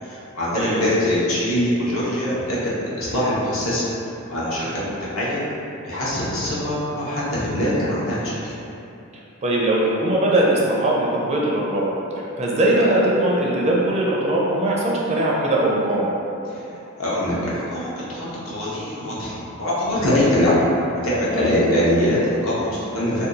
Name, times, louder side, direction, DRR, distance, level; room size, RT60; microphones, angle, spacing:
voice 1, 0.0-3.9 4.3-5.4 5.8-8.6 16.5-20.6 21.0-23.3, left 1 dB, 65° left, -8 dB, 0.8 m, -23 dB
voice 2, 9.4-11.9 12.4-16.1 21.3-21.5, right 1 dB, 30° right, -4 dB, 0.4 m, -20 dB
2.7 x 2.3 x 3.8 m, 2.8 s
head